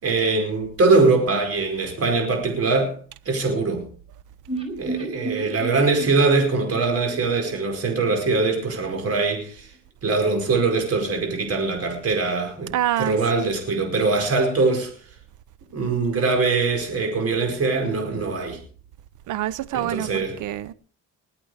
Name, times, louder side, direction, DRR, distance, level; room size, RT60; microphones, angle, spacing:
voice 1, 0.0-2.9 3.2-3.8 4.8-9.7 10.0-14.9 15.7-18.6 19.7-20.4, right 3 dB, 50° right, 5.1 m, -22 dB
sound 1, 4.5-8.3 8.6-8.7 9.0-9.1, right 2 dB, 20° right, 4.5 m, -34 dB
voice 2, 12.7-13.5 19.3-20.7, right 12 dB, 80° right, 0.9 m, -26 dB
20.5 x 8.7 x 4.9 m
cardioid pair, 90°, 30 cm